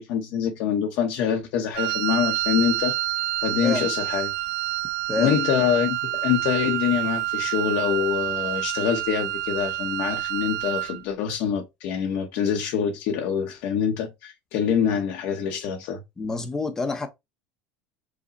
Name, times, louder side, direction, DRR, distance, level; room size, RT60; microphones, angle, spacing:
voice 1, 0.0-2.9 3.4-4.3 5.2-16.0, left 8 dB, 60° left, 0.8 m, -25 dB
Wind instrument woodwind instrument, 1.7-11.0, right 16 dB, 85° right, 0.3 m, -28 dB
voice 2, 16.2-17.1, left 3 dB, 10° left, 0.6 m, -27 dB
5.0 x 2.0 x 3.9 m
cardioid pair, 175°, 4 cm